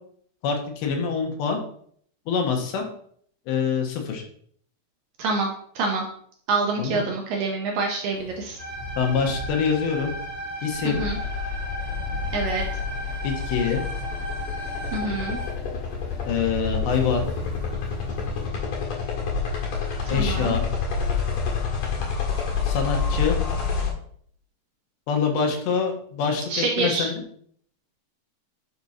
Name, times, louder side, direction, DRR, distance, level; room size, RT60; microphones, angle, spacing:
voice 1, 0.4-1.6 2.3-2.9 3.5-4.2 6.8-7.0 9.0-10.1 10.6-11.0 13.2-13.8 16.3-17.3 20.1-20.6 22.6-23.4 25.1-27.1, left 6 dB, 85° left, 2 dB, 3.5 m, -25 dB
voice 2, 6.5-8.6 11.0-11.2 12.3-12.6 14.9-15.4 20.1-20.6 26.5-27.1, right 3 dB, 75° right, 1 dB, 2.1 m, -26 dB
sound 1, 8.1-18.5, equal, ahead, 2.8 m, -42 dB
sound 2, 8.6-15.5, right 1 dB, 45° right, 0.6 m, -35 dB
sound 3, 10.9-23.9, left 5 dB, 55° left, 2.9 m, -28 dB
10.5 x 6.1 x 2.8 m, 0.62 s
omnidirectional pair, 4.9 m